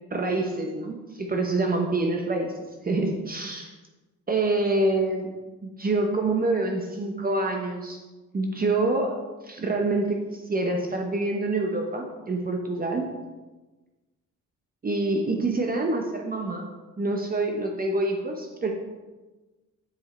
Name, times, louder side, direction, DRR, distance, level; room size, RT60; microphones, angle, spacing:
voice 1, 0.1-2.5 2.8-3.7 4.3-5.3 5.6-8.0 8.3-9.2 9.4-13.1 14.8-16.7 17.0-18.7, right 2 dB, 30° right, 2 dB, 0.9 m, -26 dB
7.4 x 4.7 x 4.3 m, 1.2 s
cardioid pair, 90°, 30 cm